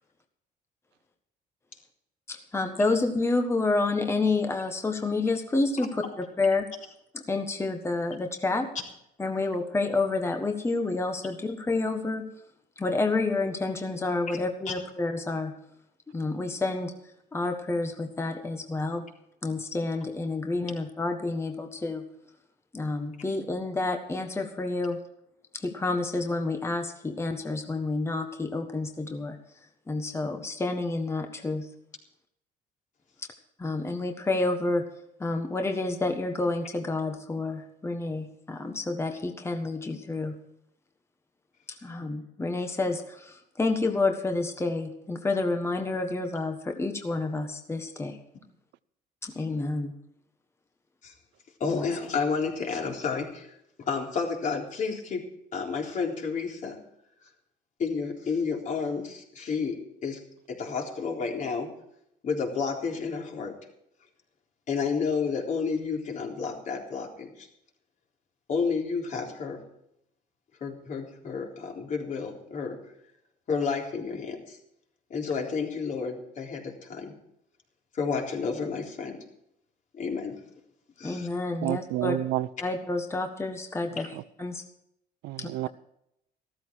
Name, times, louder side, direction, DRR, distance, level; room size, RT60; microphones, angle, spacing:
voice 1, 2.3-6.7 7.1-8.7 9.2-12.3 12.8-15.5 16.1-16.9 17.3-19.0 19.4-22.0 22.7-25.0 25.5-29.4 29.9-31.7 33.6-34.9 35.2-40.4 41.8-48.2 49.2-49.9 51.7-51.9 81.0-82.1 82.6-84.1 84.4-84.6 85.4-85.5, left 3 dB, 15° left, 5 dB, 1.4 m, -29 dB
voice 2, 51.6-53.5 53.8-55.2 55.5-56.8 57.8-60.2 60.5-61.7 62.2-63.6 64.7-67.5 68.5-69.6 70.6-72.8 73.5-74.6 75.1-77.1 77.9-79.2 79.9-80.4 81.0-81.3 84.0-84.1, left 5 dB, 50° left, 0 dB, 3.8 m, -31 dB
voice 3, 81.6-82.5 85.2-85.7, right 16 dB, 85° right, 17 dB, 0.6 m, -29 dB
14.5 x 13.5 x 4.7 m, 0.77 s
cardioid pair, 110°, 17 cm